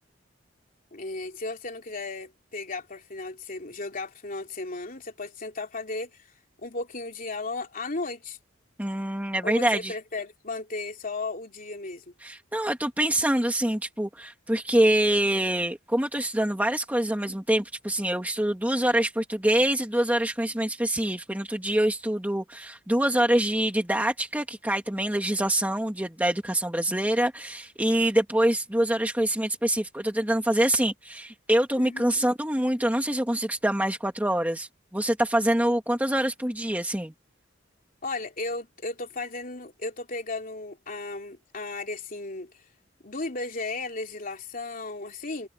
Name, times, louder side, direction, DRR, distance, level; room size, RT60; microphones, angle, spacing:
voice 1, 0.9-6.1 6.6-8.4 9.4-12.1 31.8-32.3 38.0-42.5 43.0-45.5, left 3 dB, 45° left, 3.2 m, -35 dB
voice 2, 8.8-10.0 12.2-37.1, right 1 dB, 10° right, 1.9 m, -25 dB
head